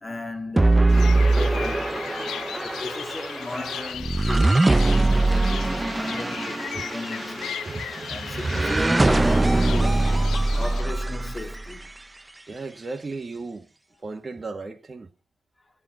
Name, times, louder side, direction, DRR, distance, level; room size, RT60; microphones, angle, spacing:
voice 1, 0.0-2.1 2.5-4.6 5.1-7.6 8.1-10.1 10.6-11.9, left 2 dB, 25° left, 2.3 m, -36 dB
sound 1, 0.6-11.9, right 2 dB, 15° right, 0.5 m, -22 dB
sound 2, 0.9-10.8, left 10 dB, 75° left, 0.5 m, -37 dB
voice 2, 7.7-8.8 12.5-13.7 14.0-15.1, right 3 dB, 30° right, 1.8 m, -34 dB
13.0 x 5.0 x 7.8 m
cardioid pair, 75°, 0 cm